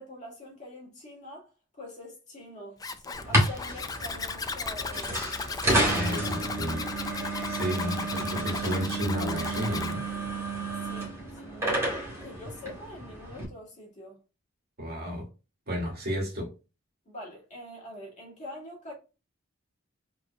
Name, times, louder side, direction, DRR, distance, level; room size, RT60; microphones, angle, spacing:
voice 1, 0.0-1.5 1.8-6.4 7.7-7.8 10.8-11.1 11.4-14.2 17.1-18.9, left 1 dB, 35° left, 2.2 m, -45 dB
Zipper (clothing), 2.8-9.9, left 4 dB, 20° left, 0.3 m, -36 dB
sound 1, 3.1-13.4, right 1 dB, 15° right, 2.0 m, -31 dB
voice 2, 5.9-6.8 7.5-10.0 14.8-15.2 15.7-16.5, equal, 50° right, 1.9 m, -32 dB
4.7 x 3.8 x 2.2 m
head